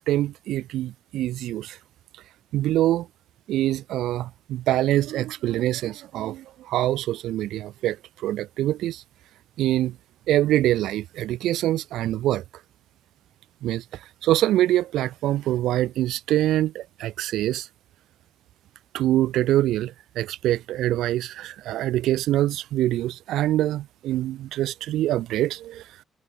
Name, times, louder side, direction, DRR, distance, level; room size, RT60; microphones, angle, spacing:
voice 1, 0.0-1.8 2.5-3.1 3.5-8.0 8.2-9.0 9.6-10.0 10.3-12.4 13.6-13.8 14.2-17.7 18.9-25.8, right 14 dB, 90° right, 1.9 m, -24 dB
cardioid pair, 75°, 0 cm